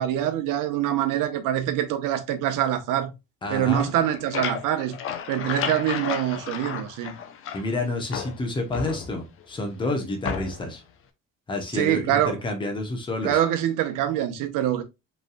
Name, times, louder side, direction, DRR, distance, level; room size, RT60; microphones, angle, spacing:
voice 1, 0.0-3.1 3.5-5.0 5.3-7.1 11.7-12.4 13.2-14.8, right 11 dB, 70° right, 0.9 m, -25 dB
voice 2, 3.4-3.9 7.5-10.8 11.5-13.4, left 2 dB, 15° left, 0.9 m, -29 dB
sound 1, 3.8-7.8 8.1-9.4 10.2-10.8, left 7 dB, 40° left, 0.6 m, -33 dB
5.2 x 3.4 x 2.2 m
cardioid pair, 175°, 32 cm